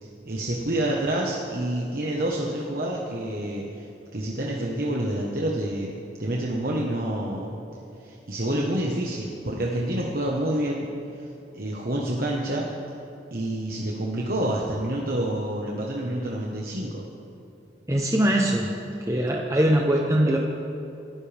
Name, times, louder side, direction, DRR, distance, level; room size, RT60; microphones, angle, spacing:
voice 1, 0.0-5.9 6.2-7.5 8.0-10.9 11.2-12.7 13.3-17.1, right 1 dB, 55° right, -3 dB, 1.3 m, -28 dB
voice 2, 17.9-18.7 19.1-20.4, right 1 dB, 15° right, -1 dB, 0.9 m, -21 dB
27.0 x 12.5 x 3.5 m, 2.8 s
head